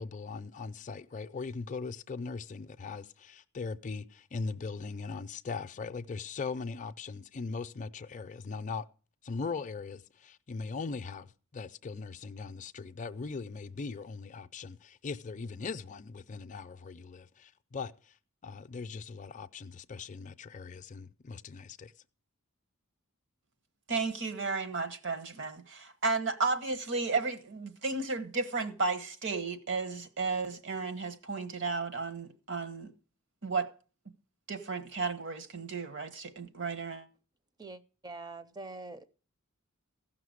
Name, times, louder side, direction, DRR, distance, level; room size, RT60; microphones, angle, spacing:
voice 1, 0.0-8.9 9.2-18.2 18.4-21.9, left 4 dB, 35° left, 0.5 m, -40 dB
voice 2, 23.9-32.9 33.4-33.7 34.5-37.0, right 4 dB, 60° right, 1.2 m, -33 dB
voice 3, 37.6-39.1, right 3 dB, 20° right, 0.6 m, -44 dB
15.0 x 5.9 x 6.3 m
head